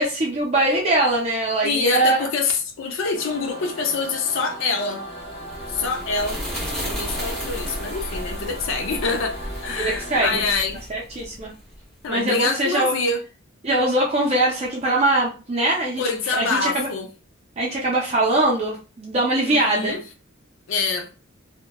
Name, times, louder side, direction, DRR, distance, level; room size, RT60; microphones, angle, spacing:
voice 1, 0.0-2.2 9.8-10.3 10.9-11.5 12.1-12.9 13.6-16.0 16.3-16.9 17.6-20.0, right 1 dB, 30° right, 0.5 m, -22 dB
voice 2, 1.6-5.0 5.7-6.4 6.8-10.8 12.0-13.2 16.0-17.1 19.5-20.1 20.7-21.1, left 4 dB, 65° left, 0.4 m, -25 dB
sound 1, 3.1-10.5, right 1 dB, 30° left, 0.9 m, -37 dB
sound 2, 5.2-11.8, equal, 5° left, 0.8 m, -33 dB
2.8 x 2.1 x 2.2 m
head